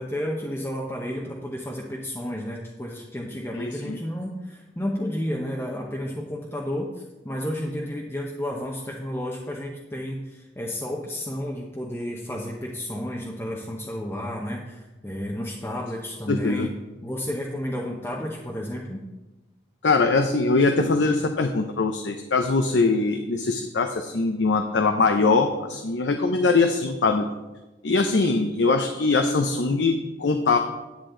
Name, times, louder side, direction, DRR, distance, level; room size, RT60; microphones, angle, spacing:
voice 1, 0.0-16.7 17.0-19.0, equal, 15° left, -2 dB, 0.8 m, -32 dB
voice 2, 3.6-4.0 16.3-16.7 19.8-27.2 27.8-30.6, left 3 dB, 75° left, 5 dB, 0.6 m, -22 dB
10.5 x 8.3 x 3.8 m, 1.1 s
head